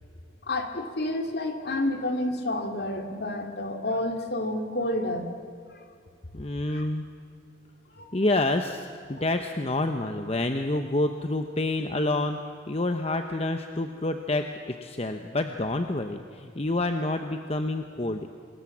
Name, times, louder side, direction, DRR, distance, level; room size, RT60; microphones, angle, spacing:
voice 1, 0.5-5.3 6.7-6.8 8.0-8.1, left 1 dB, 55° left, 4 dB, 2.6 m, -29 dB
voice 2, 6.3-7.1 8.1-12.4 12.7-18.3, left 2 dB, 30° left, 6 dB, 0.9 m, -28 dB
26.5 x 20.0 x 7.3 m, 2.3 s
head